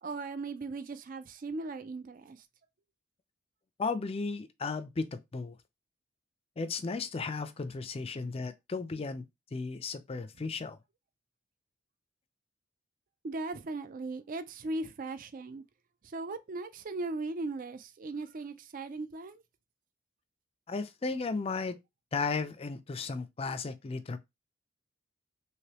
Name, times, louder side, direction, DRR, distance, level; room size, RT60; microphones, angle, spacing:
voice 1, 0.0-2.4 13.2-15.6 16.0-19.4, right 3 dB, 45° right, 0.4 m, -38 dB
voice 2, 3.8-5.6 6.6-10.8 20.7-21.8 22.1-24.2, left 4 dB, 30° left, 0.4 m, -35 dB
3.3 x 2.9 x 2.9 m
head